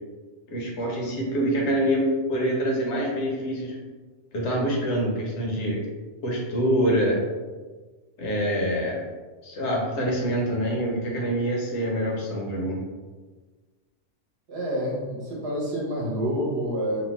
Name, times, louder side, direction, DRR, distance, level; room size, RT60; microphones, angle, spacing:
voice 1, 0.5-3.8 4.3-5.8 6.2-7.2 8.2-9.0 9.4-12.8, equal, 75° left, -2 dB, 1.0 m, -25 dB
voice 2, 14.5-17.0, equal, 60° right, -4 dB, 1.0 m, -28 dB
2.8 x 2.2 x 2.9 m, 1.4 s
omnidirectional pair, 1.2 m